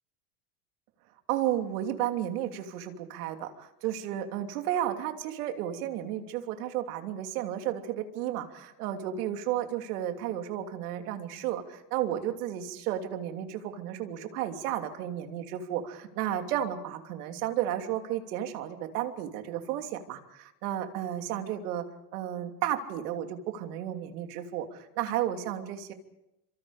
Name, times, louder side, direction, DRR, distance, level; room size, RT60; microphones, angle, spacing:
voice 1, 1.3-21.8 22.1-25.9, right 11 dB, 90° right, 5 dB, 3.1 m, -33 dB
30.0 x 25.5 x 5.0 m, 0.90 s
cardioid pair, 180°, 44 cm